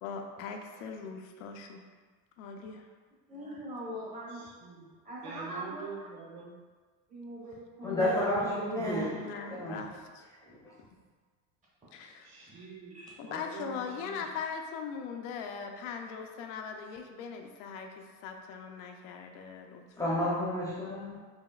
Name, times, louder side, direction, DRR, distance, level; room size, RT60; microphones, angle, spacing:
voice 1, 0.0-1.8 2.4-2.9 8.0-8.8 9.2-10.2 11.9-12.3 13.2-20.4, left 6 dB, 85° left, 3 dB, 0.6 m, -40 dB
voice 2, 3.3-4.4 5.0-5.8 7.1-8.4 11.8-12.1 12.4-12.6 12.9-13.1, right 1 dB, 20° right, -6 dB, 1.1 m, -42 dB
voice 3, 4.3-4.9 5.2-6.6 12.2-13.0 13.3-14.3, right 5 dB, 60° right, -5 dB, 1.2 m, -45 dB
voice 4, 7.8-9.2 9.5-9.8 10.5-10.7 20.0-21.2, left 1 dB, 10° left, -6 dB, 0.7 m, -31 dB
5.2 x 2.7 x 2.3 m, 1.5 s
cardioid pair, 145°, 38 cm